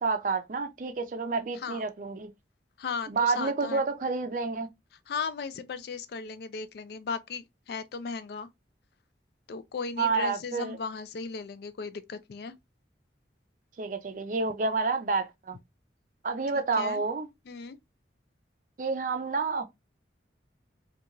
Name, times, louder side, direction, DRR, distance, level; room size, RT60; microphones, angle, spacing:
voice 1, 0.0-2.3 3.1-4.7 10.0-10.8 13.8-15.6 16.2-17.3 18.8-19.7, right 4 dB, 45° right, 0.4 m, -29 dB
voice 2, 1.5-1.9 2.8-3.8 5.1-8.5 9.5-12.5 16.8-17.0 17.5-17.8, left 5 dB, 60° left, 0.3 m, -36 dB
2.8 x 2.3 x 2.4 m
head